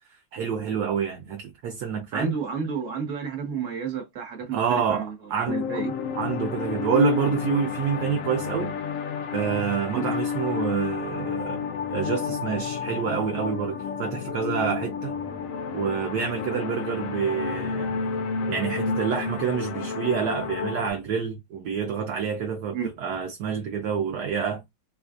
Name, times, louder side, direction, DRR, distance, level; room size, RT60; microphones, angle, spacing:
voice 1, 0.3-2.4 4.5-5.6 6.2-8.8 9.3-15.2 15.7-17.9 18.5-24.6, right 7 dB, 70° right, 1.1 m, -27 dB
voice 2, 2.1-5.9 9.9-10.1 22.7-22.9, right 6 dB, 45° right, 1.4 m, -31 dB
sound 1, 5.5-20.9, left 6 dB, 80° left, 0.7 m, -30 dB
4.0 x 2.4 x 2.5 m
omnidirectional pair, 2.0 m